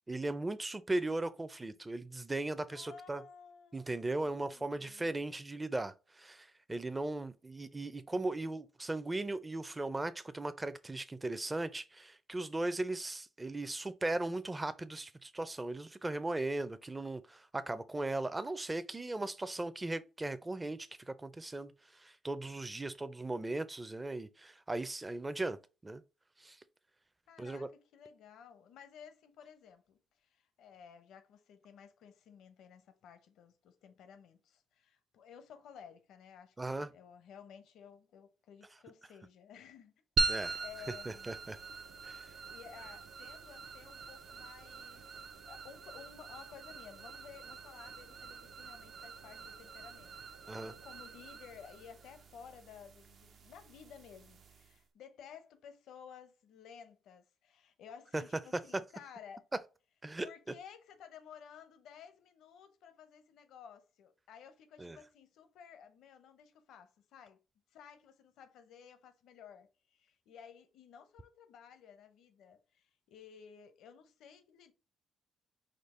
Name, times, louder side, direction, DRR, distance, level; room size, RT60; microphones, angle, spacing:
voice 1, 0.1-3.2 3.7-21.7 22.0-25.6 25.8-26.0 26.4-26.6 27.4-27.7 36.6-36.9 40.3-40.6 41.1-41.6 42.0-42.3 50.5-50.7 58.1-58.2 60.0-60.3 64.8-65.0, right 2 dB, 20° right, 0.5 m, -37 dB
voice 2, 2.7-5.1 27.3-39.9 40.6-41.3 42.5-59.5 60.2-67.4 67.7-74.7, left 7 dB, 80° left, 0.7 m, -55 dB
sound 1, 40.2-54.8, right 4 dB, 60° right, 0.6 m, -42 dB
5.0 x 2.0 x 4.2 m
cardioid pair, 90°, 0 cm